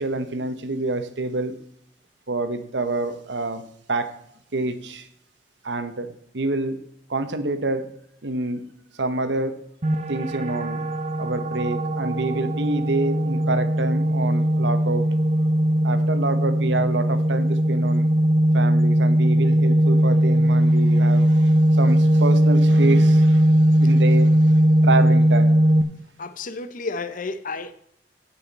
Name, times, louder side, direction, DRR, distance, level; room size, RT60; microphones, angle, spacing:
voice 1, 0.0-1.5 2.3-3.6 3.9-4.1 4.5-5.1 5.6-6.1 6.3-6.8 7.1-7.9 8.2-8.6 9.0-9.6 9.9-10.8 11.2-15.1 15.8-18.1 18.5-23.5 23.7-24.3 24.8-25.5, right 2 dB, 90° right, 1.0 m, -27 dB
sound 1, 9.8-25.8, right 1 dB, 40° right, 0.9 m, -19 dB
voice 2, 26.2-27.7, left 3 dB, 50° left, 0.8 m, -31 dB
16.5 x 5.7 x 4.2 m
head